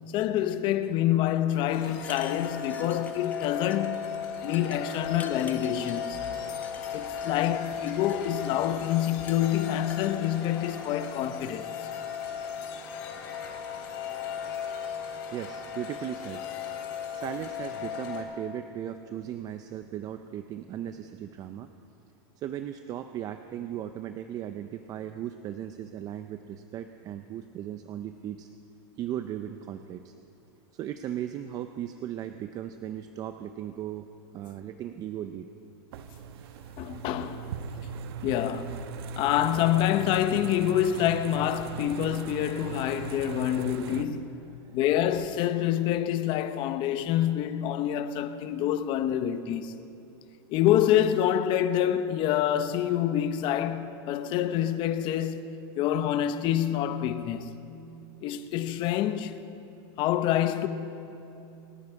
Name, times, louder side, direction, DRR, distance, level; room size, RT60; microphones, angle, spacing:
voice 1, 0.1-4.0 4.4-6.2 6.9-11.9 36.8-37.5 38.2-38.9 39.2-44.4 44.7-49.8 50.5-57.6 58.2-59.4 60.0-60.7, left 11 dB, 35° left, 0.8 m, -27 dB
sound 1, 1.7-18.2, left 7 dB, 55° left, 3.2 m, -36 dB
sound 2, 1.9-3.4 3.7-4.1 4.5-6.0 6.6-7.3 7.7-8.7 9.3-10.1, left 5 dB, 10° left, 0.7 m, -47 dB
voice 2, 15.3-16.4 17.1-21.7 22.4-28.5 29.0-30.1 30.7-34.1 34.3-35.5 37.2-37.3 37.6-37.7 44.6-44.8, right 10 dB, 25° right, 0.5 m, -37 dB
sound 3, 35.9-44.0, right 6 dB, 65° right, 1.0 m, -39 dB
28.5 x 9.6 x 4.8 m
supercardioid pair, 150°, 14 cm